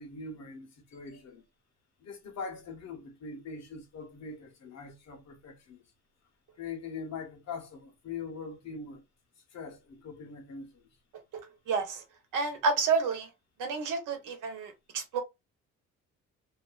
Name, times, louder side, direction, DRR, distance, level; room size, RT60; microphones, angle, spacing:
voice 1, 0.0-1.4 2.0-5.8 6.6-9.0 9.5-10.8, left 4 dB, 60° left, 1.1 m, -42 dB
voice 2, 11.7-12.0 12.3-13.3 13.6-15.2, right 4 dB, 90° right, 1.0 m, -30 dB
2.7 x 2.2 x 2.3 m
cardioid pair, 90°, 30 cm